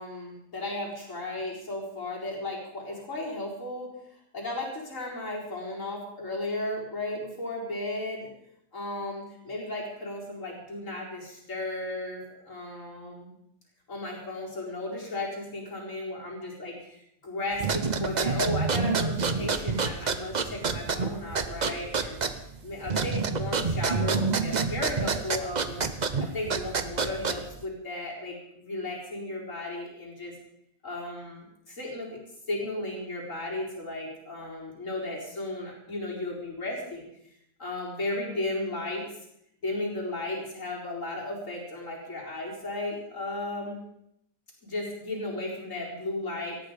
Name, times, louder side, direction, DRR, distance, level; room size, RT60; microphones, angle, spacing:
voice 1, 0.0-3.9 4.3-8.3 8.7-13.3 13.9-22.2 22.6-25.8 26.2-30.3 30.8-32.2 32.5-37.0 37.6-39.1 39.6-43.8 44.6-46.6, left 2 dB, 45° left, -3 dB, 4.8 m, -35 dB
sound 1, 17.6-27.6, right 4 dB, 35° right, 0.7 m, -28 dB
18.5 x 13.5 x 5.1 m, 0.77 s
omnidirectional pair, 1.9 m